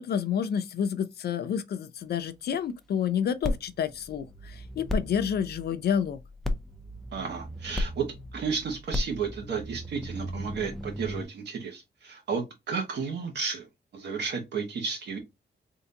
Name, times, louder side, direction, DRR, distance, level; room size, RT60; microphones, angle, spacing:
voice 1, 0.0-6.2, left 8 dB, 60° left, 0.4 m, -29 dB
sound 1, 3.4-11.3, left 1 dB, ahead, 0.4 m, -35 dB
voice 2, 7.1-8.1 8.3-13.7 13.9-15.2, right 5 dB, 70° right, 1.0 m, -32 dB
3.7 x 2.5 x 2.7 m
wide cardioid pair, 160°, 18 cm